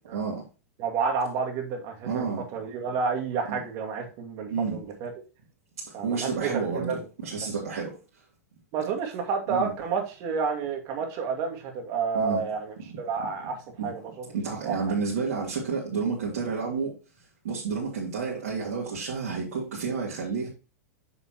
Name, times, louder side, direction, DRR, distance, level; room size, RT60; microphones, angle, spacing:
voice 1, 0.1-0.4 2.0-2.4 3.5-3.6 4.5-4.8 5.8-8.0 9.5-9.7 12.1-12.4 13.8-13.9 14.3-17.0 17.4-20.5, right 5 dB, 75° right, 2.8 m, -30 dB
voice 2, 0.8-2.3 2.5-5.1 5.9-7.0 8.7-14.3 14.6-14.7, right 5 dB, 45° right, 2.3 m, -30 dB
7.3 x 6.8 x 2.9 m
hypercardioid pair, 110°, 8 cm